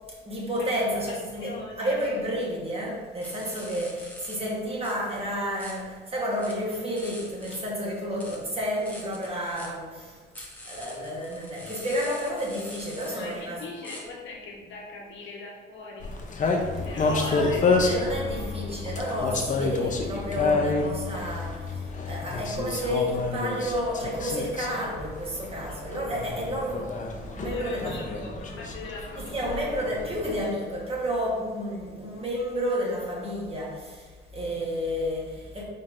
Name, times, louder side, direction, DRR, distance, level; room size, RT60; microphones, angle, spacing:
voice 1, 0.1-13.6 17.3-17.5 17.8-28.0 28.3-28.4 29.1-35.6, equal, 30° right, -3 dB, 1.2 m, -31 dB
voice 2, 1.1-2.0 13.1-16.1 16.5-17.7 27.4-29.5, left 2 dB, 70° left, -2 dB, 1.0 m, -41 dB
sound 1, 3.2-4.4 4.8-5.7 6.3-7.6 8.0-9.7 10.3-14.0 19.1-19.2, left 1 dB, 10° left, 0.9 m, -45 dB
sound 2, 16.0-30.5, left 3 dB, 40° left, 0.6 m, -29 dB
sound 3, 16.6-22.4, left 6 dB, 85° left, 0.5 m, -38 dB
4.3 x 3.8 x 2.5 m, 1.5 s
cardioid pair, 90°, 20 cm